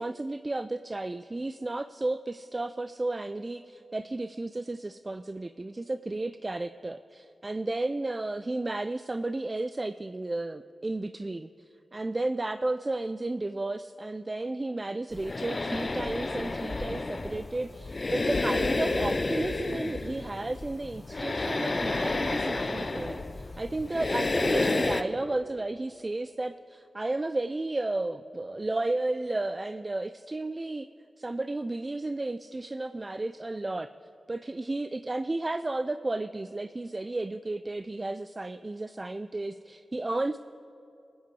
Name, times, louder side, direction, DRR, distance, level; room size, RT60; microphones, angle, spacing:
voice 1, 0.0-11.5 11.9-30.9 31.2-33.9 34.3-40.4, right 2 dB, 35° right, 12 dB, 0.3 m, -33 dB
sound 1, 15.1-25.0, left 2 dB, 45° left, 0.6 m, -30 dB
21.0 x 9.4 x 4.7 m, 2.7 s
cardioid pair, 60°, 0 cm